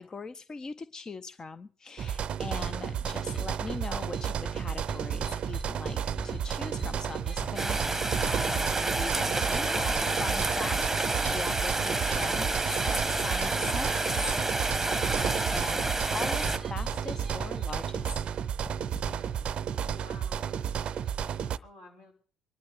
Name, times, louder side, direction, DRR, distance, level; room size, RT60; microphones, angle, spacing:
voice 1, 0.0-6.0 6.2-14.6 15.1-18.2, left 4 dB, 25° left, 14 dB, 0.6 m, -41 dB
sound 1, 2.0-21.6, right 8 dB, 45° right, 0.6 m, -32 dB
sound 2, 2.8-19.6, left 1 dB, 10° left, 1.6 m, -44 dB
Rain, 7.6-16.6, right 2 dB, 10° right, 1.1 m, -29 dB
voice 2, 19.7-22.1, left 2 dB, 60° left, -1 dB, 5.8 m, -52 dB
25.0 x 11.5 x 3.5 m, 0.41 s
figure-of-eight pair, 55°, 2 cm